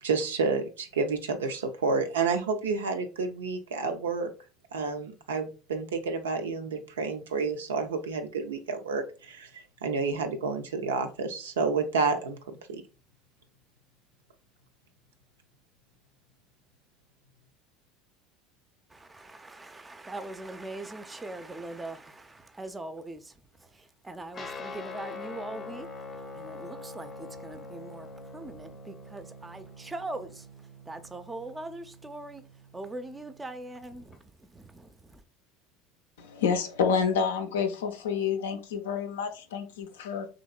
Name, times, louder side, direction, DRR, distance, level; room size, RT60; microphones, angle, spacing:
voice 1, 0.0-4.3 4.7-12.8, right 4 dB, 80° right, 0.4 m, -30 dB
voice 2, 18.9-25.9 26.1-30.5 30.9-32.4 32.7-35.2, right 2 dB, 15° right, 0.4 m, -41 dB
Guitar, 24.3-34.2, left 3 dB, 30° left, 0.6 m, -44 dB
voice 3, 36.2-40.3, left 6 dB, 75° left, 0.4 m, -28 dB
3.0 x 2.8 x 2.3 m
hypercardioid pair, 75°, 0 cm